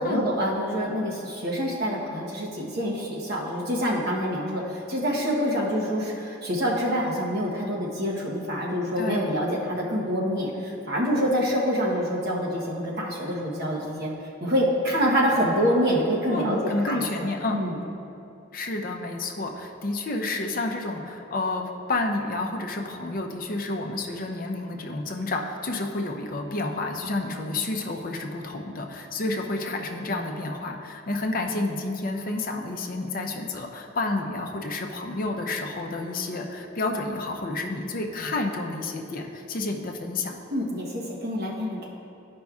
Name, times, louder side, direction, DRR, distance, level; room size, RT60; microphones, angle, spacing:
voice 1, 0.0-14.1 14.4-17.3 17.5-17.8 40.5-41.9, equal, 50° right, -3 dB, 1.0 m, -26 dB
voice 2, 9.0-9.4 16.3-17.6 18.5-40.4, left 2 dB, 45° left, 2 dB, 0.6 m, -30 dB
12.5 x 5.2 x 2.4 m, 2.7 s
head